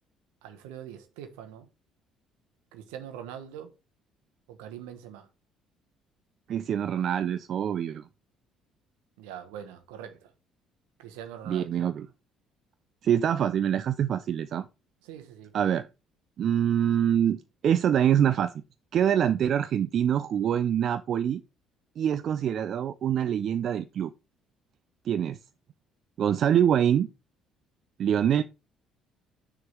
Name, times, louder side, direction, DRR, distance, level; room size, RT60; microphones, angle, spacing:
voice 1, 0.4-1.7 2.7-3.7 4.5-5.3 9.2-10.3 11.0-11.7 15.0-15.5 28.0-28.1, right 9 dB, 75° right, 1.1 m, -43 dB
voice 2, 6.5-8.1 11.5-12.1 13.0-14.7 15.5-15.9 16.4-18.5 18.9-21.4 22.0-24.1 25.0-25.4 26.2-27.1 28.0-28.4, right 9 dB, 55° right, 0.4 m, -25 dB
6.6 x 3.7 x 6.1 m
hypercardioid pair, 55°, 0 cm